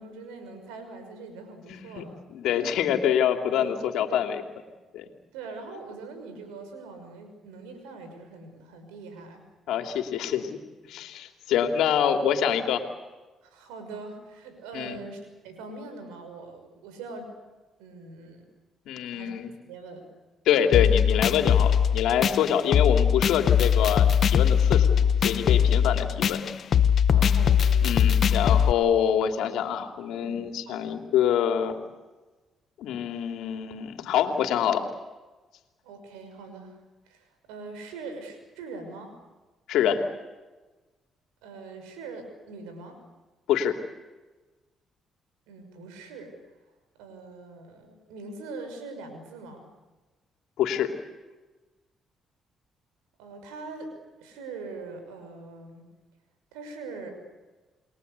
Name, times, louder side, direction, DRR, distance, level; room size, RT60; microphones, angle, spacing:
voice 1, 0.0-2.1 3.0-3.2 3.5-4.2 5.3-9.4 9.7-9.9 13.4-17.3 17.8-18.5 19.1-19.3 19.7-20.0 27.1-27.9 30.2-31.0 35.8-36.8 37.1-39.1 41.4-43.0 45.5-46.3 47.0-49.7 53.2-53.9 54.2-55.8 56.5-57.1, right 3 dB, 90° right, 7 dB, 6.1 m, -42 dB
voice 2, 1.7-2.0 2.3-4.4 4.9-5.1 9.7-10.6 10.8-12.8 14.7-15.0 18.9-19.5 20.4-26.4 27.2-27.3 27.8-31.8 32.8-34.8 39.7-40.0 43.5-43.8 50.6-50.9, left 9 dB, 75° left, 5 dB, 2.9 m, -26 dB
sound 1, 20.7-28.7, left 8 dB, 60° left, 1.1 m, -21 dB
29.0 x 22.0 x 8.3 m, 1.2 s
supercardioid pair, 60°, 0 cm